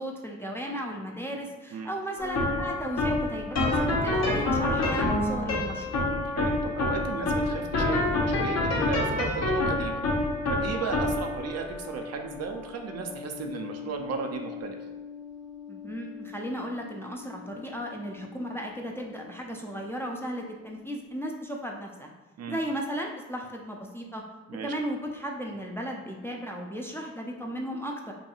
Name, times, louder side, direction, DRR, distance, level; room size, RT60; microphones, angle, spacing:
voice 1, 0.0-6.0 15.7-22.1 22.5-24.2 24.6-28.1, equal, 5° left, 0 dB, 0.4 m, -35 dB
sound 1, 2.2-19.4, left 2 dB, 50° left, 0.8 m, -29 dB
voice 2, 6.2-10.0 10.5-14.8 22.4-22.6 24.5-24.7, right 5 dB, 50° right, 4 dB, 0.5 m, -35 dB
2.6 x 2.2 x 2.8 m, 1.2 s
hypercardioid pair, 50°, 33 cm